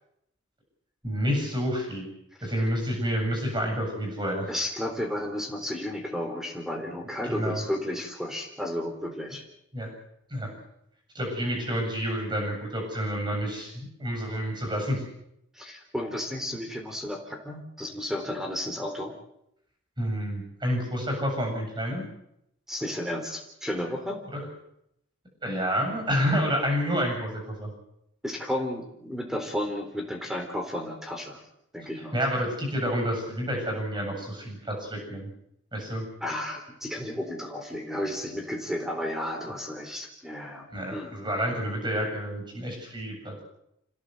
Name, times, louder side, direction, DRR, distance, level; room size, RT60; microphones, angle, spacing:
voice 1, 1.0-2.1 2.4-4.5 7.3-7.6 9.7-9.9 10.3-10.5 11.1-15.0 20.0-22.1 24.3-24.5 25.4-27.7 32.1-35.3 35.7-36.0 40.7-43.4, equal, 25° right, 2 dB, 7.8 m, -29 dB
voice 2, 4.5-9.4 15.5-19.1 22.7-24.2 28.2-31.4 31.7-32.1 36.2-41.1, left 1 dB, ahead, 3 dB, 3.8 m, -33 dB
27.0 x 16.5 x 8.0 m, 0.77 s
head